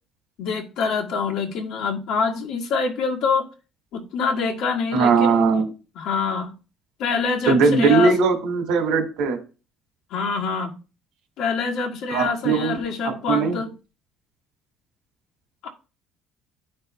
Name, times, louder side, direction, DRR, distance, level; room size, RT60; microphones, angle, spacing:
voice 1, 0.4-3.5 3.9-5.3 5.9-6.5 7.0-8.1 10.1-10.7 11.4-13.7 15.6-15.7, left 5 dB, 65° left, 1.6 m, -25 dB
voice 2, 4.9-5.7 7.5-9.4 12.1-12.8 13.0-13.6, right 5 dB, 80° right, 1.8 m, -19 dB
12.0 x 5.4 x 2.2 m
cardioid pair, 145°, 0 cm